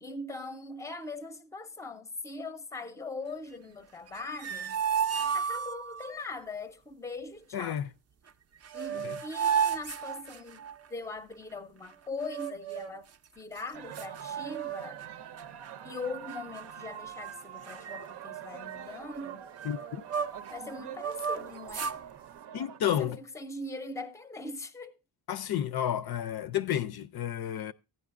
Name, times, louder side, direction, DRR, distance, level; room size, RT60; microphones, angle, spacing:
voice 1, 0.0-4.8 5.3-7.8 8.7-13.1 13.4-15.0 15.8-19.4 20.5-21.9 22.9-25.0, left 3 dB, 10° left, 0.5 m, -41 dB
sound 1, 4.1-6.1 8.3-8.4 8.6-10.9 12.2-13.0 13.6-13.7 13.9-15.1 15.4-15.7 16.3-16.9 17.2-17.4 17.6-20.5 20.9-22.0, right 7 dB, 40° right, 0.4 m, -33 dB
voice 2, 7.5-7.9 9.0-9.1 19.6-19.8 22.5-23.2 25.3-27.7, left 10 dB, 65° left, 0.5 m, -31 dB
sound 2, 13.7-22.8, right 10 dB, 80° right, 0.6 m, -44 dB
15.0 x 9.7 x 2.5 m
wide cardioid pair, 135°, 40 cm